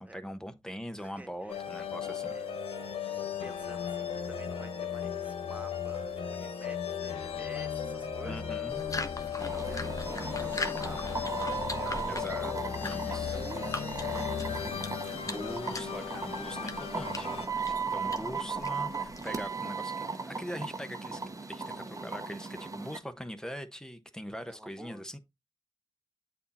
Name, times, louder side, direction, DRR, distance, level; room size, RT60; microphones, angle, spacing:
voice 1, 0.0-2.3 8.2-8.8 12.1-12.5 12.8-13.5 15.0-21.2 21.5-25.2, equal, 5° left, 1.1 m, -42 dB
voice 2, 1.0-1.6 1.9-2.5 3.4-8.7 9.2-14.8 24.5-25.2, right 1 dB, 15° right, 1.6 m, -50 dB
sound 1, 1.5-17.5, left 7 dB, 85° left, 0.9 m, -36 dB
sound 2, 8.7-19.5, left 2 dB, 35° left, 1.1 m, -41 dB
sound 3, 9.4-23.0, right 4 dB, 35° right, 1.0 m, -37 dB
8.4 x 2.8 x 4.1 m
supercardioid pair, 40°, 9 cm